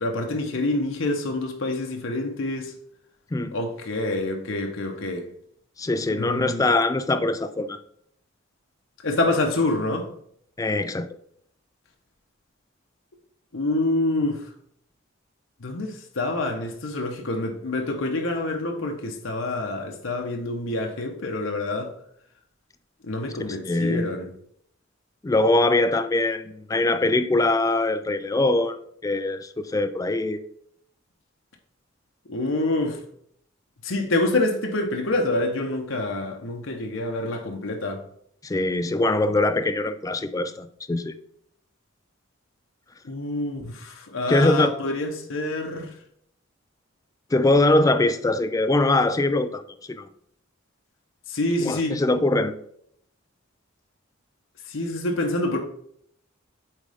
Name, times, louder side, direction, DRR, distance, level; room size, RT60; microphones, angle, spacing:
voice 1, 0.0-2.7 3.5-5.3 6.1-6.7 9.0-10.1 13.5-14.4 15.6-21.9 23.0-24.3 32.3-33.0 33.8-38.0 43.0-45.9 51.3-52.0 54.7-55.6, left 2 dB, 75° left, 1.0 m, -27 dB
voice 2, 5.8-7.8 10.6-11.1 23.5-24.1 25.2-30.4 38.4-41.2 44.3-44.7 47.3-49.6 49.9-50.1 51.6-52.5, left 2 dB, 15° left, 0.3 m, -22 dB
8.0 x 3.7 x 3.5 m
head